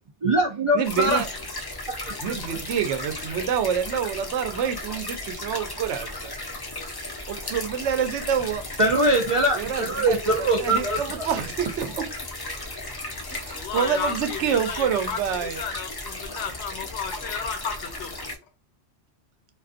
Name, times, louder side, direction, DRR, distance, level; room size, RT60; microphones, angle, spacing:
voice 1, 0.2-1.2 2.3-2.4 8.8-11.0, right 1 dB, 60° right, 1 dB, 0.3 m, -22 dB
voice 2, 0.7-1.3 2.2-6.4 7.3-8.6 9.5-12.1 13.3-15.6, right 8 dB, 90° right, 8 dB, 0.9 m, -27 dB
sound 1, 0.8-18.4, left 2 dB, 35° left, 0.4 m, -35 dB
voice 3, 13.5-18.2, left 6 dB, 75° left, 7 dB, 0.8 m, -33 dB
2.4 x 2.4 x 2.4 m, 0.31 s
omnidirectional pair, 1.2 m